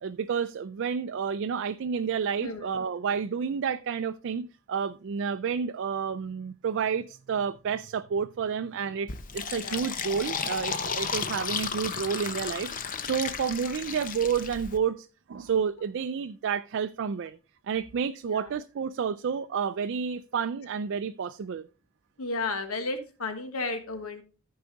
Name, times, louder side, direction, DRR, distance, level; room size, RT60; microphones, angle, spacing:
voice 1, 0.0-17.4 17.7-21.7, right 6 dB, 55° right, 0.4 m, -30 dB
Fill (with liquid), 9.1-14.8, left 6 dB, 40° left, 0.7 m, -33 dB
voice 2, 9.5-9.8 18.3-18.5 22.2-24.2, left 3 dB, 85° left, 1.4 m, -33 dB
14.0 x 4.8 x 3.9 m
head